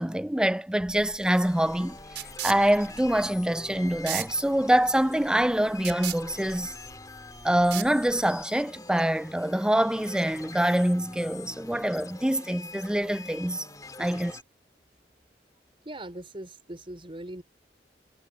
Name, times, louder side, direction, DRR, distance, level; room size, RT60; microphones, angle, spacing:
voice 1, 0.0-6.7 7.4-13.7 14.0-14.3, right 1 dB, 5° right, 0.4 m, -25 dB
sound 1, 0.8-8.4, right 11 dB, 80° right, 4.7 m, -39 dB
sound 2, 1.2-14.4, left 3 dB, 20° left, 2.6 m, -45 dB
voice 2, 15.8-17.4, right 1 dB, 30° right, 4.3 m, -40 dB
head